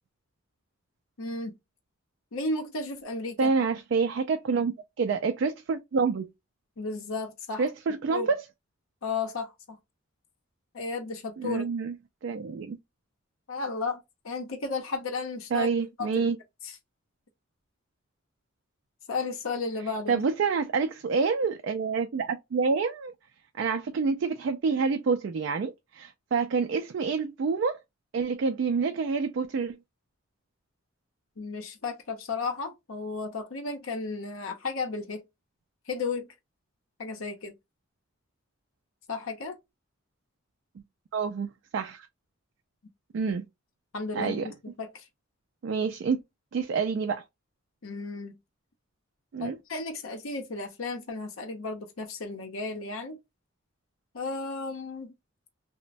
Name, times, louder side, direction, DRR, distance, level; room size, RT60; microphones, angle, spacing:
voice 1, 1.2-1.6 2.3-3.5 6.8-7.7 8.1-8.3 9.0-9.8 10.7-11.7 13.5-15.7 16.0-16.2 16.6-16.8 19.1-20.2 31.4-35.2 35.9-36.3 37.0-37.5 39.1-39.6 43.9-45.0 47.8-48.3 49.4-53.2 54.1-55.1, left 3 dB, 75° left, 0.7 m, -34 dB
voice 2, 3.4-4.7 5.0-6.3 7.6-8.4 11.4-12.0 12.2-12.8 15.5-16.4 20.1-23.1 23.6-27.8 28.1-29.8 41.1-42.1 43.1-43.4 44.1-44.5 45.6-46.2 46.5-47.2 49.3-49.6, right 5 dB, 60° right, 0.3 m, -27 dB
3.0 x 2.1 x 2.5 m
head